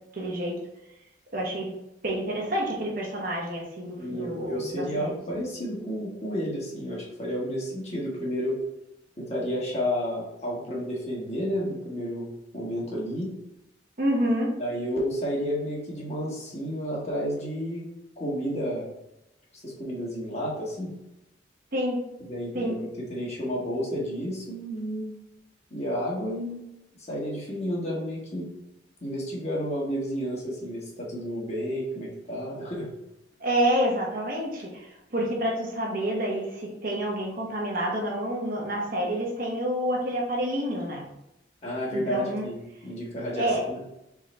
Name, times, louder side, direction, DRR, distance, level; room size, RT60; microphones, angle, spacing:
voice 1, 0.1-0.6 1.3-1.7 2.0-5.1 14.0-14.5 21.7-22.0 22.5-22.8 33.4-41.1 41.9-42.5 43.3-43.7, equal, 50° right, -1 dB, 1.0 m, -28 dB
voice 2, 4.0-8.6 9.2-13.3 14.6-17.8 18.2-18.8 19.5-20.9 22.2-25.1 25.7-26.6 27.1-28.5 29.0-32.9 41.6-43.8, equal, 35° left, -4 dB, 1.4 m, -31 dB
4.0 x 3.7 x 3.2 m, 0.87 s
head